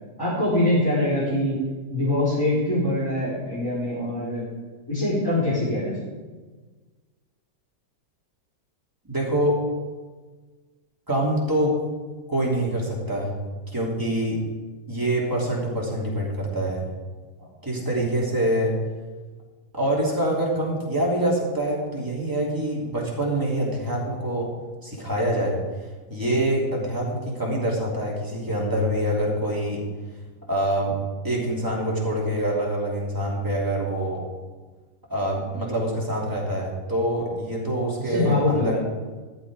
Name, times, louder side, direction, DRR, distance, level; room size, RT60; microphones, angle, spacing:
voice 1, 0.2-1.6 1.9-4.4 4.9-6.0 38.0-38.8, left 1 dB, 10° left, -11 dB, 4.4 m, -23 dB
voice 2, 9.0-9.6 11.1-11.8 12.3-13.3 13.7-14.4 14.9-16.8 17.6-18.8 19.7-24.5 24.8-25.6 26.1-29.8 30.5-31.0 31.2-34.3 35.1-38.8, right 1 dB, 10° right, -4 dB, 3.1 m, -25 dB
14.0 x 10.0 x 4.9 m, 1.3 s
omnidirectional pair, 1.9 m